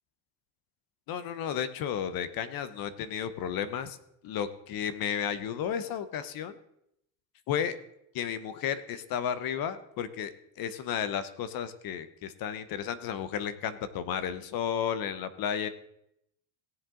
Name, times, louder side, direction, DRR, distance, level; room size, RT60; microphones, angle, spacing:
voice 1, 1.1-4.0 4.2-6.6 7.5-7.7 8.1-15.7, left 8 dB, 50° left, 14 dB, 0.9 m, -33 dB
17.0 x 7.7 x 3.8 m, 0.78 s
cardioid pair, 130°, 45 cm